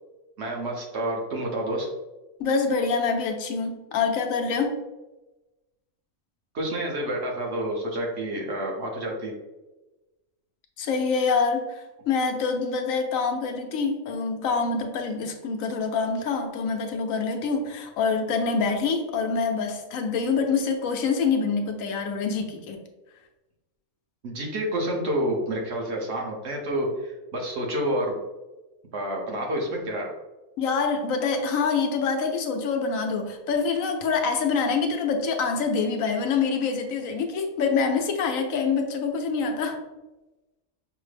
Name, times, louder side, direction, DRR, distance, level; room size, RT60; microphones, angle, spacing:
voice 1, 0.4-1.9 6.5-9.3 24.2-28.2 28.9-30.1, right 1 dB, 60° right, 0 dB, 1.1 m, -29 dB
voice 2, 2.4-4.8 10.8-22.8 30.6-39.8, left 5 dB, 85° left, 5 dB, 1.0 m, -26 dB
5.8 x 2.0 x 3.2 m, 1.1 s
omnidirectional pair, 1.4 m